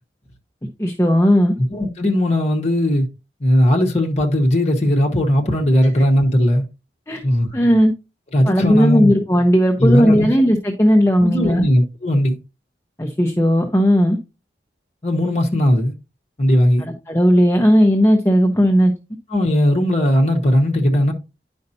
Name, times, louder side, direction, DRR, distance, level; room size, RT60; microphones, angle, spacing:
voice 1, 0.8-1.5 7.1-7.2 7.5-7.9 8.5-11.7 13.0-14.2 16.8-18.9, equal, 15° left, 0.8 m, -15 dB
voice 2, 1.7-3.1 3.4-6.7 7.2-7.5 8.3-9.1 9.8-10.3 11.2-12.4 15.0-15.9 16.4-16.8 19.3-21.1, left 1 dB, 40° left, 1.1 m, -17 dB
10.0 x 5.3 x 2.8 m
head